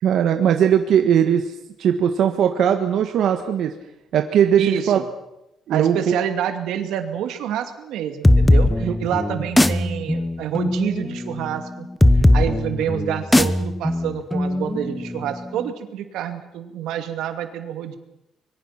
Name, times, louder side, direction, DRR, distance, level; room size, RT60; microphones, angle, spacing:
voice 1, 0.0-1.5 1.8-3.7 4.1-5.0 5.7-6.1 8.8-8.9, right 9 dB, 65° right, 6 dB, 1.5 m, -19 dB
voice 2, 4.6-5.0 5.7-11.9 12.1-18.0, right 10 dB, 90° right, 7 dB, 2.5 m, -28 dB
sound 1, 8.2-15.6, left 1 dB, 10° left, 1.0 m, -19 dB
25.0 x 23.0 x 6.0 m, 0.88 s
cardioid pair, 135°, 0 cm